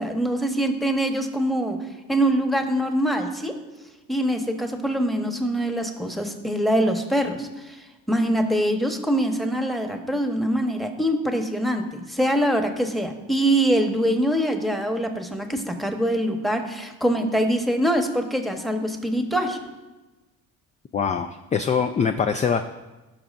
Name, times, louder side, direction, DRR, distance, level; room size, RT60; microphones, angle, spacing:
voice 1, 0.0-1.8 2.1-3.5 4.1-7.8 8.1-19.6, right 1 dB, ahead, 4 dB, 1.0 m, -24 dB
voice 2, 20.9-22.6, left 6 dB, 20° left, 8 dB, 0.3 m, -23 dB
16.5 x 5.9 x 2.5 m, 1.1 s
cardioid pair, 90°, 35 cm